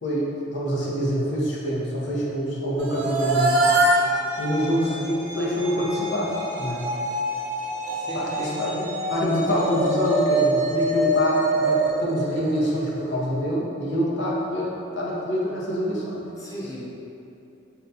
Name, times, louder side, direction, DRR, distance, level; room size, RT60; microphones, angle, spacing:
voice 1, 0.0-3.6 4.4-6.8 8.1-16.2, equal, 65° left, -5 dB, 0.7 m, -26 dB
sound 1, 2.8-13.0, right 1 dB, 80° right, 0.5 m, -25 dB
voice 2, 7.8-8.7 16.3-16.8, equal, 15° left, -7 dB, 0.6 m, -36 dB
3.9 x 2.2 x 4.0 m, 2.8 s
head